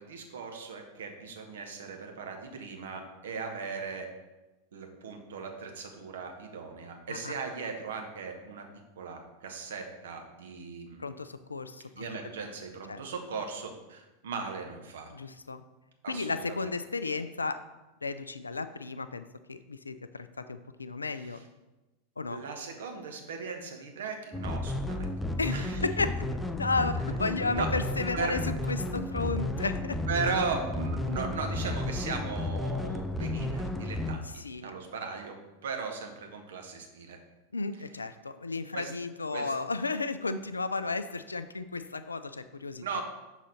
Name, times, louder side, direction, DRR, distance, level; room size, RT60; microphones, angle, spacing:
voice 1, 0.0-4.1 4.7-8.6 9.0-11.1 11.9-15.1 16.0-16.7 21.1-21.4 22.3-25.1 25.5-25.8 27.5-27.7 28.1-28.4 30.1-35.4 35.6-37.2 38.7-38.9 39.3-39.5 42.8-43.0, right 5 dB, 65° right, 3 dB, 0.9 m, -37 dB
voice 2, 11.0-12.1 12.9-13.0 15.1-15.6 16.1-17.6 18.0-21.4 22.2-22.4 25.4-26.1 26.6-28.4 28.7-30.0 34.4-34.7 37.5-42.8, left 3 dB, 80° left, 11 dB, 0.3 m, -33 dB
sound 1, 24.3-34.2, left 1 dB, 5° left, 0.4 m, -32 dB
6.1 x 4.0 x 4.1 m, 1.1 s
figure-of-eight pair, 90°, 0 cm